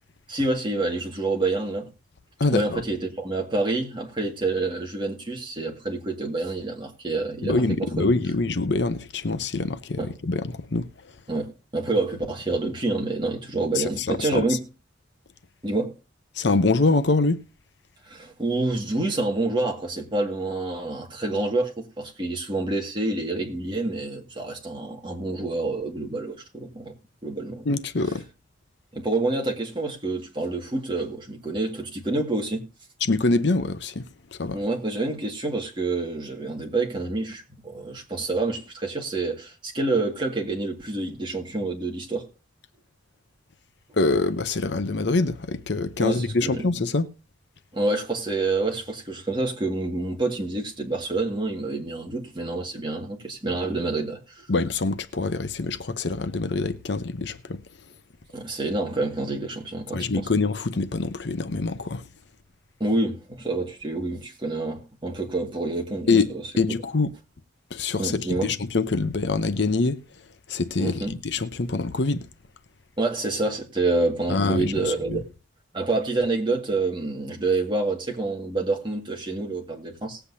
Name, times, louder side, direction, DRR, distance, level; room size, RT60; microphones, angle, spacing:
voice 1, 0.3-1.9 2.5-8.1 10.0-10.1 11.3-14.6 15.6-15.9 18.0-27.0 27.2-27.7 28.9-32.6 34.5-42.3 46.0-46.7 47.7-54.5 58.3-60.3 62.8-66.5 68.0-68.5 70.8-71.1 73.0-75.3 75.7-80.2, right 2 dB, 25° right, 2.0 m, -27 dB
voice 2, 2.4-2.8 7.4-10.8 13.8-14.1 14.3-14.4 16.4-17.4 27.7-28.2 33.0-34.0 34.3-34.6 44.0-47.1 54.5-57.6 59.9-62.0 66.1-66.3 66.6-67.1 67.7-70.0 70.5-72.3 74.3-75.2, left 3 dB, 60° left, 0.7 m, -24 dB
19.5 x 8.0 x 2.8 m
head